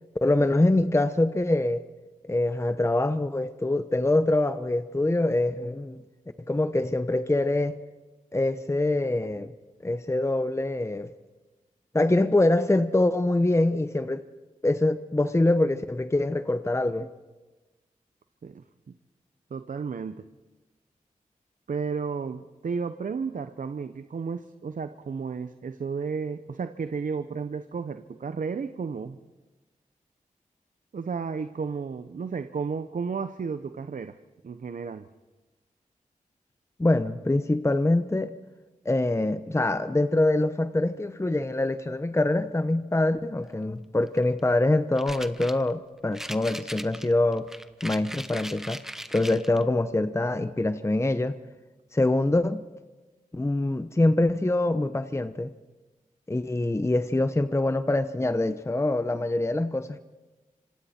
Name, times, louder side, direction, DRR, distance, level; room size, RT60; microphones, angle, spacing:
voice 1, 0.2-1.8 2.3-6.0 6.5-7.8 8.3-9.5 9.8-11.1 11.9-14.2 14.6-17.1 36.8-38.3 38.8-47.5 47.8-48.8 49.1-51.4 51.9-52.6 53.3-55.5 56.3-60.0, left 2 dB, 20° left, 11 dB, 0.8 m, -24 dB
voice 2, 19.5-20.2 21.7-29.2 30.9-34.2 34.4-35.1, right 5 dB, 70° right, 10 dB, 0.8 m, -33 dB
sound 1, 44.0-44.4 45.0-45.7 46.1-49.6, equal, 5° right, 1.0 m, -39 dB
26.0 x 26.0 x 4.4 m, 1.2 s
cardioid pair, 55°, 14 cm